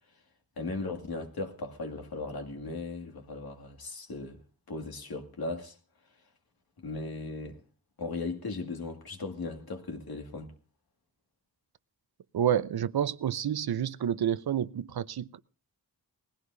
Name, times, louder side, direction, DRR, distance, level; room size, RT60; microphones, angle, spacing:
voice 1, 0.6-4.4 4.7-5.8 6.8-7.6 8.0-10.5, left 3 dB, 75° left, 2.2 m, -37 dB
voice 2, 12.3-15.4, right 9 dB, 85° right, 0.7 m, -29 dB
19.5 x 16.0 x 2.7 m
wide cardioid pair, 105°, 37 cm